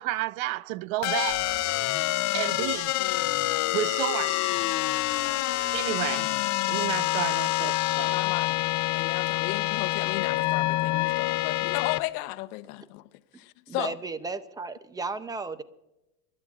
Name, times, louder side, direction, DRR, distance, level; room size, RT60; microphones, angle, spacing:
voice 1, 0.0-1.6 2.3-2.9 3.7-4.6 5.7-6.3 6.7-8.2, right 16 dB, 60° right, 0.5 m, -31 dB
sound 1, 1.0-12.0, left 17 dB, 35° left, 0.7 m, -27 dB
voice 2, 3.0-3.6 6.1-6.4 7.9-8.6 8.9-13.0 13.4-13.9, left 18 dB, 65° left, 0.9 m, -35 dB
voice 3, 13.7-15.6, right 3 dB, 10° right, 0.5 m, -34 dB
27.0 x 12.5 x 2.4 m
supercardioid pair, 120°, 49 cm